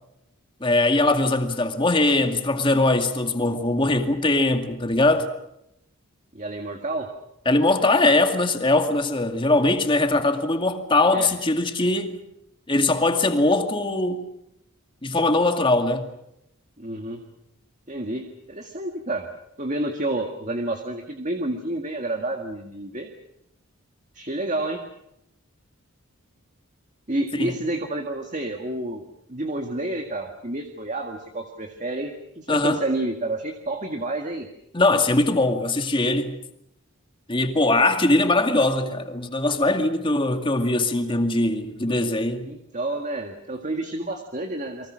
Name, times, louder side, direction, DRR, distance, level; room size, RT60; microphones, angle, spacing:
voice 1, 0.6-5.3 7.5-12.2 12.7-14.3 15.0-16.0 27.4-27.5 32.5-32.8 34.7-36.4 37.3-42.5, left 2 dB, 20° left, 2.2 m, -21 dB
voice 2, 6.3-7.1 11.1-11.3 16.8-17.2 17.9-19.3 19.6-23.1 24.1-24.8 27.1-29.0 29.3-34.5 42.4-44.9, right 2 dB, 35° right, 2.0 m, -29 dB
30.0 x 23.5 x 6.4 m
head